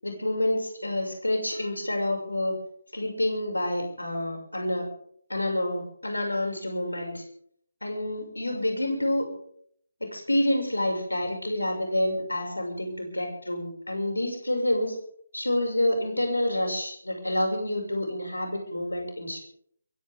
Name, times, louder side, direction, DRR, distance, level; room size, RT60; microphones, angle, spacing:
voice 1, 0.0-2.5 2.9-4.9 5.3-7.2 7.8-9.3 10.0-15.0 15.3-19.4, left 1 dB, 75° left, 2 dB, 6.2 m, -28 dB
23.0 x 16.0 x 3.7 m, 0.62 s
figure-of-eight pair, 150°, 0 cm